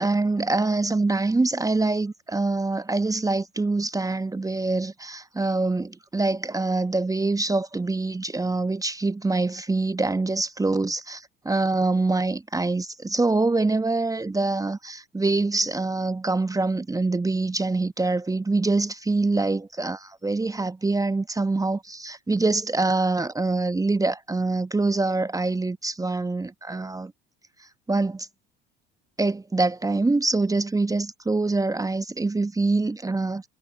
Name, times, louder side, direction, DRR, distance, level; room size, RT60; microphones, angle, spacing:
voice 1, 0.0-27.1 27.9-28.3 29.2-33.4, right 3 dB, 10° right, 1.1 m, -25 dB
figure-of-eight pair, 65°, 30 cm